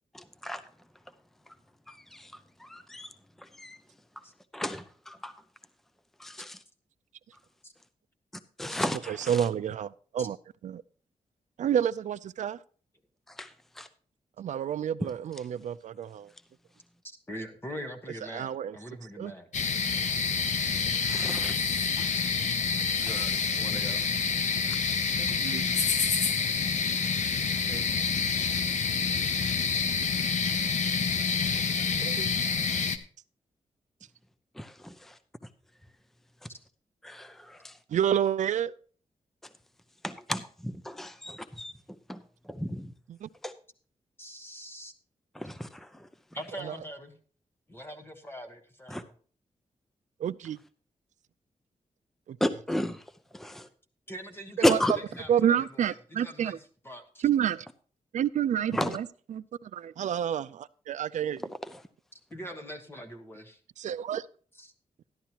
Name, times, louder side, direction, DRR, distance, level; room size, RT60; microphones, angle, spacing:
voice 1, 0.1-0.6 1.5-1.6 1.9-3.1 3.4-3.8 4.5-5.4 6.2-6.6 8.6-9.5 13.3-13.9 15.0-15.1 21.1-21.6 22.0-22.1 24.7-24.8 34.5-35.2 36.4-36.5 37.0-37.8 40.0-41.7 42.1-42.9 43.4-43.5 45.3-46.1 48.9-49.0 52.4-53.0 53.3-53.7 54.6-54.9 58.7-59.0 61.7-61.8, left 1 dB, 5° left, 0.6 m, -33 dB
voice 2, 9.1-10.4 10.6-10.8 11.6-12.6 14.4-16.3 18.3-18.8 19.2-19.3 25.2-25.6 27.7-27.8 31.7-32.3 37.9-38.7 43.2-43.3 46.6-46.7 50.2-50.6 52.3-52.4 54.6-54.8 55.3-56.6 57.2-57.7 58.1-61.4 63.8-64.3, right 9 dB, 75° right, 0.4 m, -29 dB
voice 3, 17.0-19.5 23.1-24.1 44.2-44.9 46.3-47.1 47.7-49.1 54.1-56.6 56.8-57.3 62.3-63.6 64.6-64.7, equal, 20° left, 1.3 m, -42 dB
sound 1, 19.5-33.0, left 5 dB, 75° left, 0.9 m, -27 dB
13.5 x 11.0 x 2.9 m
wide cardioid pair, 140°, 12 cm